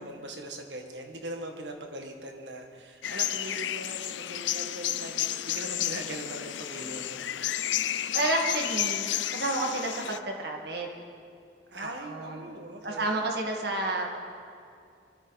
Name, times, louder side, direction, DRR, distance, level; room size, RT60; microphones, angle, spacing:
voice 1, 0.0-7.3 11.7-13.2, right 1 dB, 75° right, 3 dB, 1.8 m, -41 dB
sound 1, 3.0-10.2, left 12 dB, 85° left, 0.5 m, -31 dB
voice 2, 8.1-9.1 9.3-11.0 11.8-12.6 12.8-14.2, right 2 dB, 60° right, 1 dB, 2.0 m, -30 dB
24.5 x 14.0 x 4.1 m, 2.4 s
head